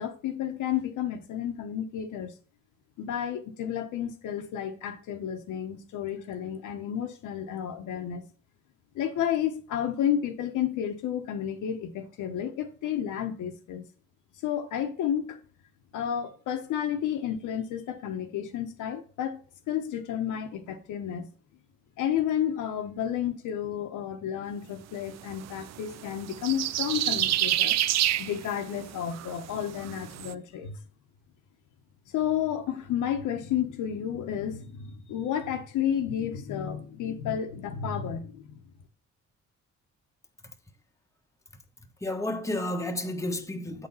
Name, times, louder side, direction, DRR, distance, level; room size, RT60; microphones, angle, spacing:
voice 1, 0.0-2.3 3.0-8.2 8.9-13.9 14.4-15.4 15.9-19.4 19.7-21.3 22.0-27.8 28.2-30.8 32.1-38.6, left 9 dB, 85° left, 1.1 m, -31 dB
sound 1, 25.2-30.3, right 13 dB, 60° right, 0.5 m, -29 dB
voice 2, 42.0-43.9, left 1 dB, 10° left, 1.1 m, -31 dB
8.4 x 4.1 x 5.6 m
cardioid pair, 90°, 30 cm